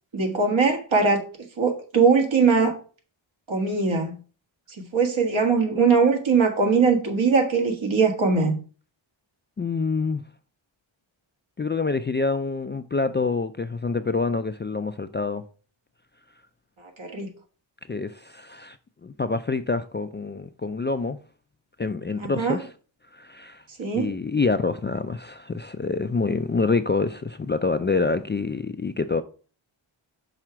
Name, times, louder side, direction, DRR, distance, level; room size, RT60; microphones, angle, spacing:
voice 1, 0.1-1.2 1.6-2.8 3.5-4.2 4.9-8.6 17.0-17.3 22.2-22.6 23.8-24.1, right 5 dB, 70° right, 1.7 m, -21 dB
voice 2, 9.6-10.2 11.6-15.4 17.9-18.8 19.0-21.2 21.8-22.7 23.1-23.6 23.9-29.2, left 4 dB, 25° left, 0.3 m, -26 dB
6.1 x 4.8 x 4.4 m
wide cardioid pair, 90°, 49 cm